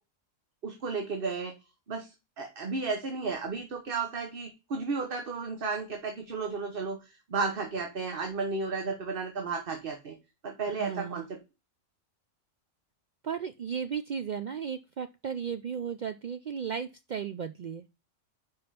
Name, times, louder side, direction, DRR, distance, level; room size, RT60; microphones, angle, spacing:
voice 1, 0.6-1.5 1.9-10.1 10.4-11.4, right 4 dB, 50° right, 5 dB, 1.2 m, -33 dB
voice 2, 10.8-11.3 13.2-17.8, right 7 dB, 70° right, 10 dB, 0.4 m, -35 dB
5.5 x 5.2 x 5.6 m, 0.27 s
omnidirectional pair, 1.3 m